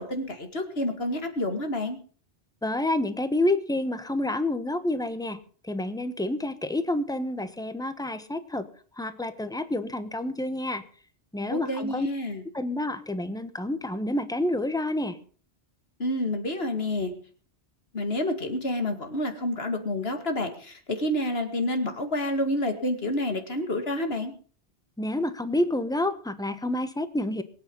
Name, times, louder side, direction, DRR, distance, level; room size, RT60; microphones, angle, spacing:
voice 1, 0.0-2.0 11.5-12.4 16.0-17.1 17.9-24.3, left 1 dB, 65° left, 6 dB, 2.5 m, -29 dB
voice 2, 2.6-8.7 9.0-10.8 11.3-12.1 12.5-15.2 25.0-27.4, left 1 dB, 5° left, 11 dB, 1.1 m, -28 dB
22.0 x 9.1 x 5.5 m, 0.42 s
omnidirectional pair, 1.1 m